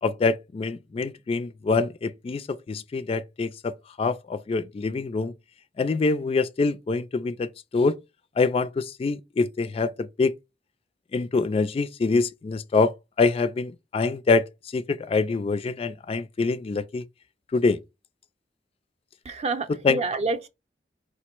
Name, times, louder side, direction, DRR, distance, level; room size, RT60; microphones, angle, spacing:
voice 1, 0.0-5.3 5.8-8.0 8.4-10.3 11.1-14.5 14.7-17.0 17.5-17.8 19.8-20.0, left 4 dB, 35° left, 0.3 m, -25 dB
voice 2, 19.2-20.5, right 3 dB, 40° right, 0.6 m, -28 dB
4.9 x 2.0 x 4.4 m
head